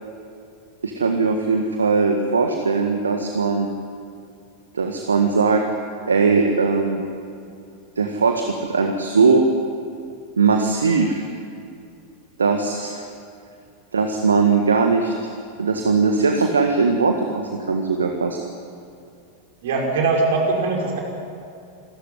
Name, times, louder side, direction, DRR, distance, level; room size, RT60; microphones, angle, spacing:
voice 1, 0.8-3.7 4.7-5.6 6.1-7.0 8.0-9.4 10.4-11.3 12.4-13.1 13.9-15.1 15.6-18.4, right 4 dB, 70° right, 4 dB, 1.6 m, -19 dB
voice 2, 19.6-21.0, right 3 dB, 55° right, 0 dB, 5.5 m, -21 dB
27.5 x 13.5 x 9.8 m, 2.5 s
figure-of-eight pair, 90°, 0 cm